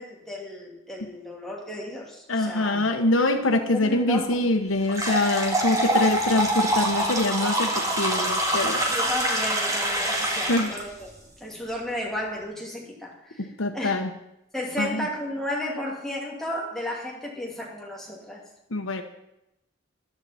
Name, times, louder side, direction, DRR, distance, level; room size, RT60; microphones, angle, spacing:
voice 1, 0.0-2.9 3.7-4.5 8.9-11.1 11.4-13.5 13.7-14.0 14.5-18.4, left 1 dB, ahead, -3 dB, 2.6 m, -33 dB
voice 2, 2.3-8.8 10.5-10.7 13.6-14.1 14.8-15.1 18.7-19.0, left 2 dB, 80° left, 6 dB, 1.2 m, -24 dB
sound 1, 4.9-10.8, right 1 dB, 15° right, 2.1 m, -25 dB
14.5 x 11.5 x 4.3 m, 0.88 s
head